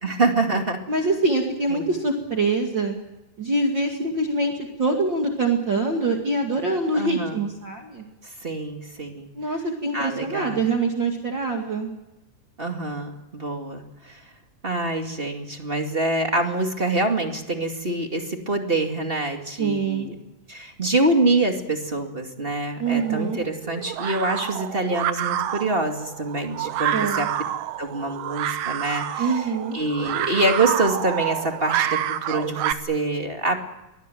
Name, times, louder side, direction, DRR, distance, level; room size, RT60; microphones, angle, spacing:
voice 1, 0.0-0.8 1.7-1.9 6.9-7.4 8.4-9.3 9.9-10.6 12.6-14.2 14.6-20.2 20.5-27.3 27.8-29.4 29.7-33.6, right 2 dB, 20° right, 4 dB, 1.9 m, -25 dB
voice 2, 0.9-3.0 3.4-4.5 4.8-8.1 9.3-11.9 19.6-20.1 22.8-23.4 26.9-27.3 29.2-29.8, right 3 dB, 40° right, 1 dB, 2.7 m, -24 dB
sound 1, 22.9-32.7, right 11 dB, 80° right, 2.6 m, -28 dB
24.0 x 19.5 x 9.2 m, 0.97 s
omnidirectional pair, 3.7 m